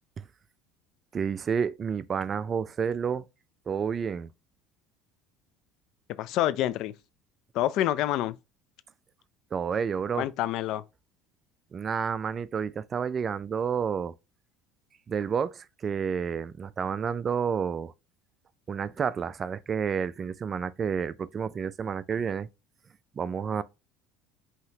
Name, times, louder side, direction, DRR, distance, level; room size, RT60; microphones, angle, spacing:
voice 1, 1.1-3.2 3.7-4.3 9.5-10.3 11.7-14.1 15.1-17.9 18.7-22.5 23.2-23.6, right 6 dB, 35° right, 0.3 m, -30 dB
voice 2, 6.2-6.9 7.5-8.4 10.1-10.8, left 13 dB, 65° left, 0.4 m, -27 dB
5.5 x 2.9 x 2.8 m
supercardioid pair, 85°, 0 cm